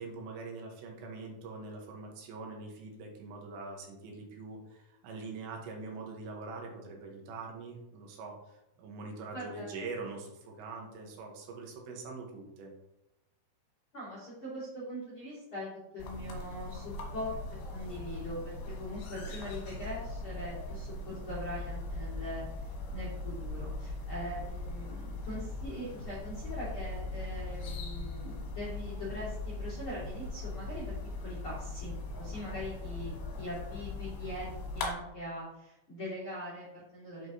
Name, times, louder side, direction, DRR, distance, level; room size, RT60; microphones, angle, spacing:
voice 1, 0.0-12.7, right 3 dB, 75° right, 0 dB, 3.2 m, -43 dB
voice 2, 9.3-9.8 13.9-17.4 17.7-22.4 22.9-30.9 31.2-37.3, equal, 40° left, -8 dB, 2.0 m, -42 dB
sound 1, 16.0-34.9, left 2 dB, 70° left, 3.3 m, -40 dB
8.0 x 6.9 x 2.7 m, 0.89 s
omnidirectional pair, 5.5 m